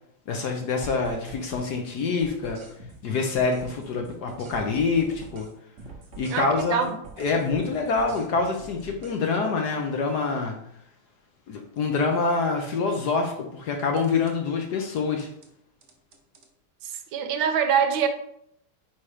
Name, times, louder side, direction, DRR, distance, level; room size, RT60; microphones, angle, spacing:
voice 1, 0.3-2.6 3.0-5.5 6.2-6.9 7.2-10.5 11.5-15.3, left 4 dB, 65° left, 1.1 m, -26 dB
sound 1, 0.8-1.7 2.0-5.5 5.8-9.2 14.0-14.3 14.9-15.5 15.8-16.5, right 3 dB, 45° right, 1.0 m, -44 dB
voice 2, 6.3-6.9 16.8-18.1, right 7 dB, 75° right, 1.4 m, -24 dB
4.9 x 4.3 x 4.8 m
omnidirectional pair, 2.3 m